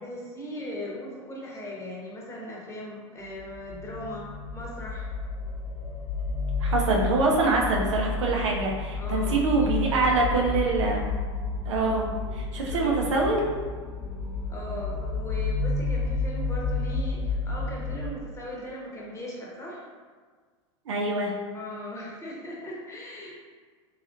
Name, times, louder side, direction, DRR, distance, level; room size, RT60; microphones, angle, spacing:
voice 1, 0.0-5.1 9.0-9.4 10.0-10.4 12.5-12.9 14.5-19.8 21.5-23.4, left 1 dB, 20° left, -4 dB, 1.0 m, -38 dB
sound 1, 3.3-18.1, left 3 dB, 60° left, 0.8 m, -31 dB
voice 2, 6.6-11.0 11.7-13.5 20.9-21.3, right 3 dB, 80° right, -1 dB, 0.6 m, -25 dB
3.8 x 2.9 x 2.5 m, 1.5 s
hypercardioid pair, 95°, 16 cm